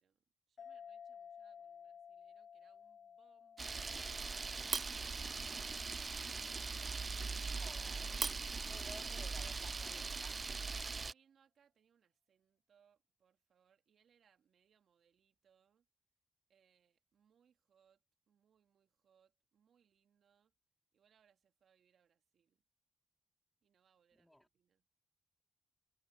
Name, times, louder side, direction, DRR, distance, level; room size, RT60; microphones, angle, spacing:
voice 1, 0.0-6.3 10.8-15.9 16.5-20.5 20.9-22.6 23.6-24.8, right 8 dB, 70° right, 2.9 m, -75 dB
sound 1, 0.6-7.6, left 7 dB, 65° left, 0.4 m, -57 dB
Camera, 3.6-11.1, right 4 dB, 45° right, 0.3 m, -40 dB
voice 2, 7.6-10.4 24.2-24.5, left 1 dB, 10° left, 3.2 m, -57 dB
supercardioid pair, 45°, 0 cm